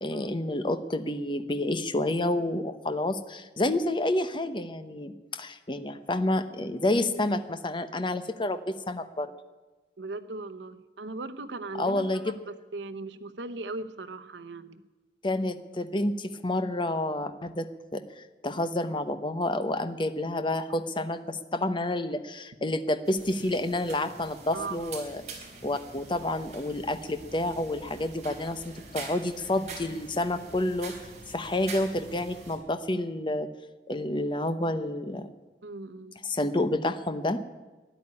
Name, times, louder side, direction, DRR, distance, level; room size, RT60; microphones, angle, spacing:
voice 1, 0.0-9.3 11.8-12.3 15.2-17.7 17.9-25.2 25.6-30.9 31.3-33.5 33.9-35.3 36.2-37.4, left 1 dB, 25° left, 10 dB, 0.9 m, -29 dB
voice 2, 10.0-14.8 24.5-25.0 35.6-36.4, right 3 dB, 85° right, 9 dB, 0.9 m, -39 dB
sound 1, 23.1-32.6, right 4 dB, 40° right, 3.7 m, -45 dB
13.0 x 10.5 x 9.7 m, 1.2 s
head